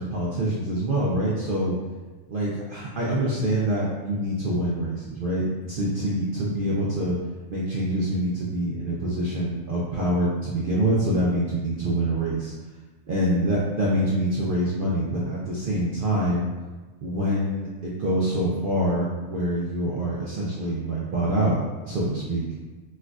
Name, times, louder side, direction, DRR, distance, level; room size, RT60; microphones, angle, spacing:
voice 1, 0.0-1.8 2.3-7.2 7.5-12.5 13.1-16.5 17.0-21.6 21.8-22.4, right 1 dB, 65° right, -5 dB, 0.5 m, -25 dB
4.3 x 2.3 x 2.4 m, 1.3 s
omnidirectional pair, 1.3 m